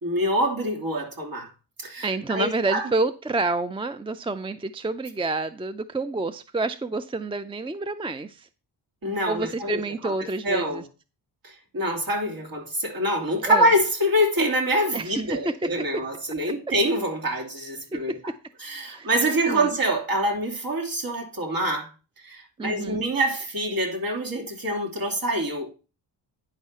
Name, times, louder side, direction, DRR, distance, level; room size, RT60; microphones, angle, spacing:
voice 1, 0.0-1.5 1.8-2.9 9.0-10.1 10.4-10.8 11.4-18.2 18.6-21.9 22.2-25.7, right 1 dB, 50° right, 3.0 m, -25 dB
voice 2, 2.0-8.5 9.3-10.8 13.5-13.7 14.9-15.5 17.3-17.4 17.9-18.2 18.8-19.1 19.5-19.7 22.6-23.0, right 3 dB, 10° right, 0.4 m, -28 dB
9.8 x 4.7 x 5.5 m
cardioid pair, 70°, 45 cm